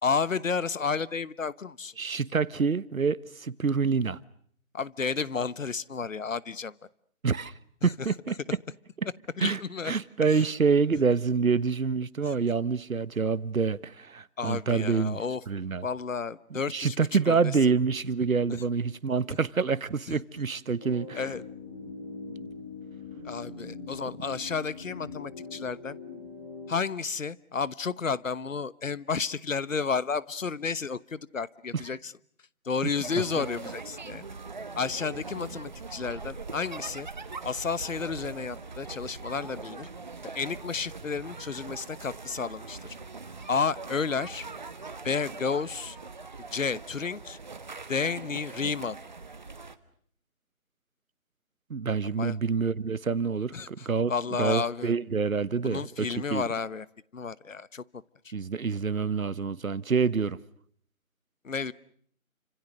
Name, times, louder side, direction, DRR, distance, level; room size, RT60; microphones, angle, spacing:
voice 1, 0.0-1.9 4.7-6.7 7.8-7.9 9.4-9.9 10.3-10.4 12.2-12.3 14.4-15.4 15.8-17.4 18.5-18.6 19.3-19.4 20.1-20.2 21.1-21.4 23.2-26.0 26.7-32.1 32.6-34.2 34.8-37.1 37.4-39.9 40.3-42.8 43.5-44.5 45.0-46.0 46.5-47.4 47.9-49.0 52.2-52.4 53.5-54.9 55.6-56.9 57.1-57.8 58.2-58.3 61.4-61.7, left 5 dB, 65° left, 1.2 m, -31 dB
voice 2, 2.0-4.2 7.2-7.5 7.8-8.3 9.4-9.6 9.8-15.2 15.5-15.9 16.7-21.2 31.7-31.8 51.7-54.1 54.4-56.4 58.3-60.4, right 5 dB, 70° right, 1.3 m, -27 dB
sound 1, 20.8-26.7, left 4 dB, 15° left, 2.3 m, -42 dB
sound 2, 33.0-49.8, right 4 dB, 35° right, 1.3 m, -42 dB
29.5 x 26.5 x 6.5 m
figure-of-eight pair, 170°, 42 cm